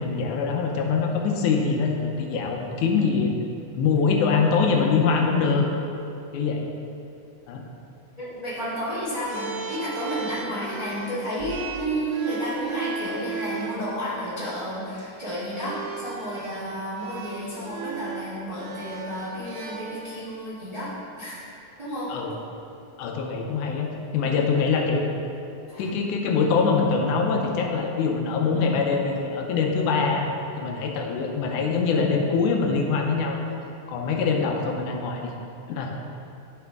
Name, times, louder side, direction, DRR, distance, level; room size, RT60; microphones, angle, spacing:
voice 1, 0.0-3.3 3.7-5.7 6.3-6.6 7.5-7.7 22.1-22.3 23.0-25.1 25.8-30.3 30.6-33.4 33.9-35.3 35.7-35.9, left 5 dB, 85° left, 2 dB, 2.2 m, -23 dB
voice 2, 8.2-20.9 21.2-21.4 21.8-22.1 25.7-25.9, equal, 15° right, -11 dB, 1.3 m, -31 dB
sound 1, 9.3-13.8 14.8-15.0 15.5-20.4, right 5 dB, 90° right, 2.1 m, -36 dB
11.0 x 4.9 x 3.5 m, 2.8 s
omnidirectional pair, 3.5 m